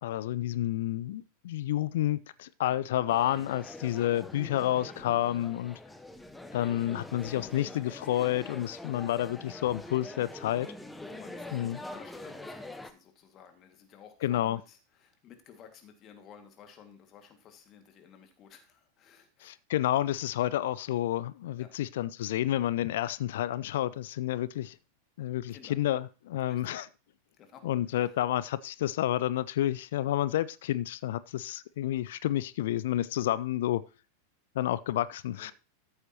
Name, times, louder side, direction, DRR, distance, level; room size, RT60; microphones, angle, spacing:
voice 1, 0.0-5.8 6.5-10.7 11.5-11.8 14.2-14.6 19.4-24.8 25.2-26.9 27.6-33.8 34.6-35.5, left 13 dB, 55° left, 0.4 m, -30 dB
sound 1, 3.1-12.9, left 1 dB, 5° left, 0.8 m, -44 dB
voice 2, 11.1-19.6 21.6-21.7 25.5-25.8 26.4-26.7 27.4-28.2 35.3-35.5, left 8 dB, 30° left, 2.0 m, -54 dB
13.5 x 8.0 x 2.9 m
figure-of-eight pair, 90°, 0 cm